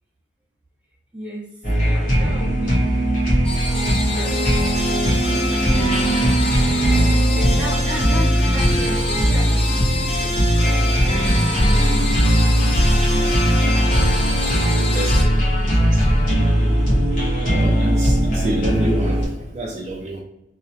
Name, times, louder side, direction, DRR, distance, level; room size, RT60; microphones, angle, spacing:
voice 1, 1.1-1.5 1.8-2.8 4.1-4.4 7.3-10.4, equal, 5° right, -5 dB, 1.0 m, -35 dB
sound 1, 1.6-19.3, equal, 50° left, 1.3 m, -19 dB
sound 2, 3.4-15.2, left 1 dB, 35° left, 0.7 m, -26 dB
voice 2, 14.9-16.1 17.5-20.2, right 1 dB, 40° right, -1 dB, 0.4 m, -28 dB
3.0 x 2.8 x 2.7 m, 0.87 s
head